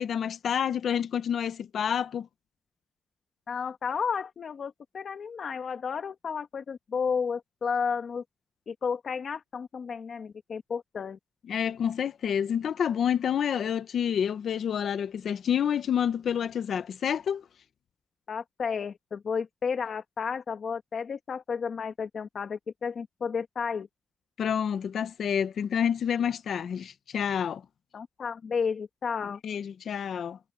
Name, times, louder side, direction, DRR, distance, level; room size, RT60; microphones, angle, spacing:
voice 1, 0.0-2.3 11.5-17.4 24.4-27.6 29.4-30.4, left 8 dB, 70° left, 1.2 m, -28 dB
voice 2, 3.5-8.2 8.7-11.2 18.3-23.9 27.9-29.4, left 6 dB, 50° left, 1.8 m, -32 dB
wide cardioid pair, 160°, 0 cm